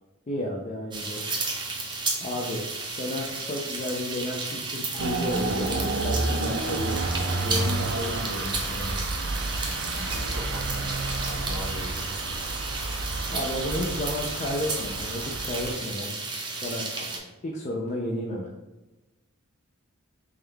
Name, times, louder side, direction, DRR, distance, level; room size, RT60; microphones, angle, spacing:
voice 1, 0.3-1.4 2.2-6.9 7.4-9.0 13.3-16.1 16.6-16.9 17.4-18.5, left 1 dB, 35° left, -2 dB, 0.5 m, -32 dB
sound 1, 0.9-17.2, right 3 dB, 20° right, 0.6 m, -33 dB
sound 2, 5.0-15.8, right 2 dB, 60° right, 0.5 m, -31 dB
voice 2, 10.0-12.3 16.9-17.2, left 1 dB, 65° left, -1 dB, 1.1 m, -41 dB
3.6 x 3.3 x 3.4 m, 1.0 s
head